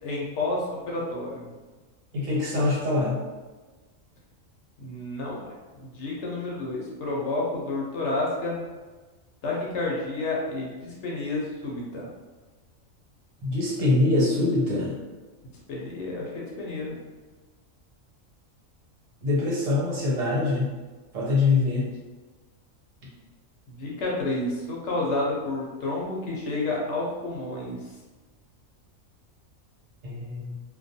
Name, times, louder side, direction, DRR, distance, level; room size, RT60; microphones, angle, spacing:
voice 1, 0.0-1.5 4.8-8.7 9.4-12.1 15.7-16.9 23.7-27.8, left 2 dB, 65° left, -3 dB, 0.8 m, -30 dB
voice 2, 2.1-3.2 13.4-15.0 19.2-20.7 21.1-21.9 30.0-30.5, left 2 dB, 75° right, -5 dB, 1.2 m, -24 dB
2.3 x 2.2 x 2.6 m, 1.3 s
omnidirectional pair, 1.4 m